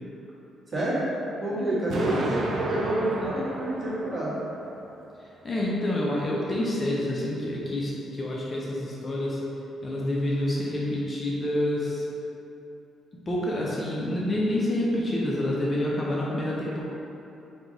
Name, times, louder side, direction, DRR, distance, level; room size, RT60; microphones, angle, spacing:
voice 1, 0.7-1.0 1.4-4.4, right 1 dB, 30° right, -9 dB, 1.5 m, -28 dB
voice 2, 1.9-2.5 5.2-9.4 9.8-12.1 13.1-16.8, left 1 dB, 30° left, -5 dB, 0.6 m, -28 dB
Explosion, 1.9-4.9, right 2 dB, 60° right, 0.5 m, -34 dB
3.9 x 2.9 x 3.8 m, 2.9 s
cardioid pair, 90°, 0 cm